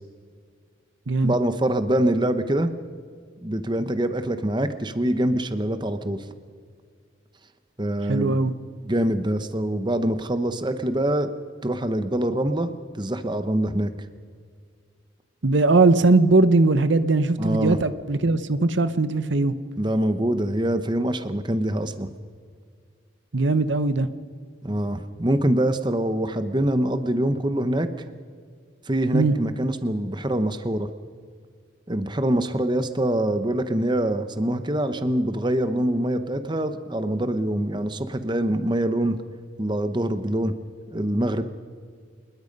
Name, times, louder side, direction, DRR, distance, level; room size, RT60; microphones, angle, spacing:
voice 1, 1.2-2.7 3.4-6.2 7.8-8.4 8.8-11.3 11.6-13.9 17.4-17.8 19.8-22.1 24.6-27.9 28.9-30.9 31.9-39.2 39.6-40.5 40.9-41.4, right 1 dB, 25° right, 10 dB, 0.9 m, -24 dB
voice 2, 8.1-8.5 15.4-19.5 23.3-24.1 29.1-29.3, right 3 dB, 70° right, 13 dB, 0.9 m, -20 dB
26.0 x 20.5 x 5.4 m, 2.1 s
head